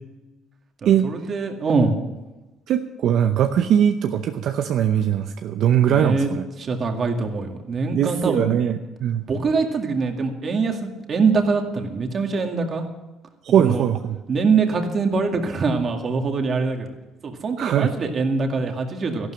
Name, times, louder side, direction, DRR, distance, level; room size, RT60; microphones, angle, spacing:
voice 1, 0.8-2.0 5.9-6.3 6.6-8.6 9.3-12.8 13.6-13.9 14.3-16.9 17.2-19.3, right 4 dB, 40° right, 4 dB, 2.1 m, -23 dB
voice 2, 2.7-6.4 7.9-9.2 13.4-14.2 17.6-17.9, right 9 dB, 65° right, 6 dB, 0.7 m, -20 dB
14.0 x 12.0 x 6.4 m, 1.1 s
cardioid pair, 130°, 0 cm